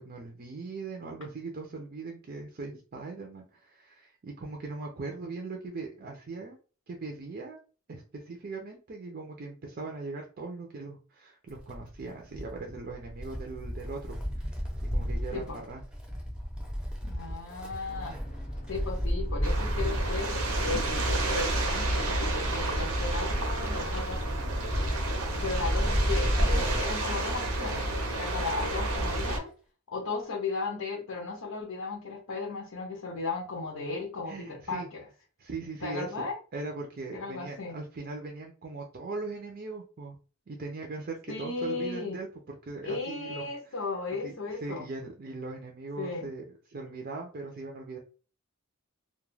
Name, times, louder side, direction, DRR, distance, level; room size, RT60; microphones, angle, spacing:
voice 1, 0.0-6.6 6.9-7.6 7.9-15.8 34.3-34.9 35.4-40.2 40.5-43.8 44.2-48.0, right 3 dB, 45° right, 1 dB, 0.5 m, -40 dB
Wind, 11.5-28.1 28.4-28.5 29.5-29.6, equal, 5° right, 0.6 m, -33 dB
voice 2, 17.0-18.2 18.7-24.2 25.4-29.5 29.9-35.0 35.8-36.4 37.1-37.8 41.3-42.2 42.8-44.8 46.0-46.3, left 3 dB, 85° left, 0 dB, 0.6 m, -36 dB
sound 1, 17.9-26.2, equal, 35° left, 0.6 m, -45 dB
sound 2, 19.4-29.4, right 1 dB, 85° right, 0.7 m, -30 dB
2.3 x 2.2 x 3.2 m, 0.36 s
head